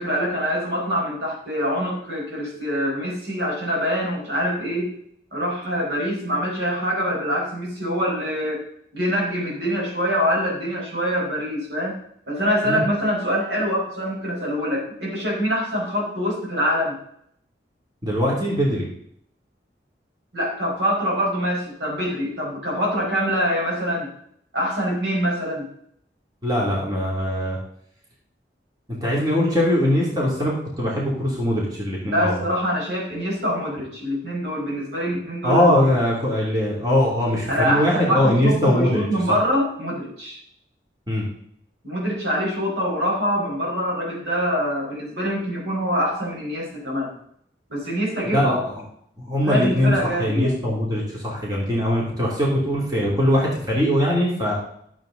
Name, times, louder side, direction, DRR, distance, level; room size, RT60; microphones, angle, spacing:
voice 1, 0.0-4.9 5.3-8.6 8.9-12.0 12.3-16.9 20.3-24.1 24.5-25.7 32.0-35.8 37.5-40.4 41.8-47.1 47.7-48.6 49.4-50.5, equal, 75° right, -3 dB, 4.8 m, -24 dB
voice 2, 18.0-18.9 26.4-27.6 29.0-32.4 35.4-39.0 41.1-41.3 48.3-48.7 49.2-54.5, left 1 dB, 20° right, -4 dB, 2.8 m, -21 dB
12.5 x 7.6 x 3.9 m, 0.69 s
head